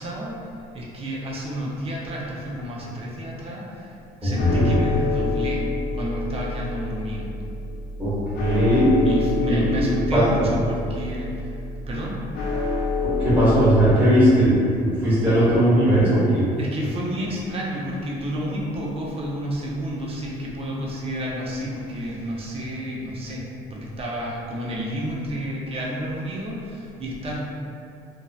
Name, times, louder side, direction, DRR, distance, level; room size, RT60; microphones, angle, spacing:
voice 1, 0.0-5.7 5.9-7.3 9.0-11.5 11.9-12.2 16.6-23.4 23.7-27.4, equal, 35° right, -3 dB, 0.5 m, -30 dB
voice 2, 4.2-4.8 8.0-9.0 9.4-9.6 10.1-10.2 13.0-16.4, equal, 10° right, -13 dB, 1.0 m, -18 dB
sound 1, 4.4-13.9, left 3 dB, 75° left, 0.5 m, -28 dB
2.6 x 2.0 x 2.3 m, 2.4 s
cardioid pair, 110°, 17 cm